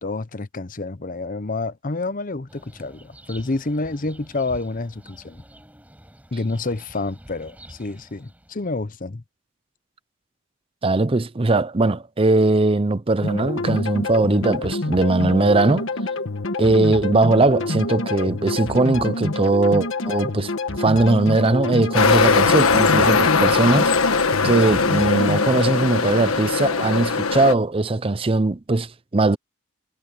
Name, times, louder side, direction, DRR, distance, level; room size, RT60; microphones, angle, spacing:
voice 1, 0.0-5.4 6.3-9.2, left 3 dB, 40° left, 0.8 m, -28 dB
sound 1, 2.5-8.8, right 1 dB, 5° right, 4.8 m, -47 dB
voice 2, 10.8-15.9 16.6-20.5 20.8-23.9 24.4-29.4, right 2 dB, 25° right, 0.6 m, -20 dB
sound 2, 13.2-25.6, left 2 dB, 65° left, 1.4 m, -27 dB
sound 3, 21.9-27.5, left 4 dB, 85° left, 1.4 m, -19 dB
head